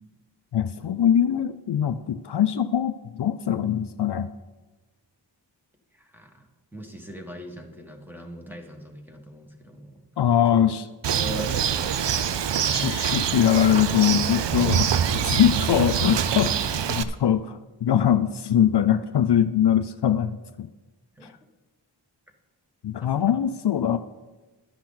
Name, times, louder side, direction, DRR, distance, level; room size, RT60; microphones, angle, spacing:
voice 1, 0.5-4.3 10.2-10.8 12.6-20.7 21.2-21.3 22.8-24.0, left 9 dB, 65° left, 11 dB, 0.5 m, -22 dB
voice 2, 5.9-6.5 6.7-10.0 10.5-10.7 11.2-12.2 21.2-21.3 23.0-23.4, equal, 5° right, 3 dB, 1.5 m, -41 dB
Bird, 11.0-17.0, right 8 dB, 70° right, 0.6 m, -25 dB
12.0 x 10.5 x 4.0 m, 1.2 s
wide cardioid pair, 90°, 44 cm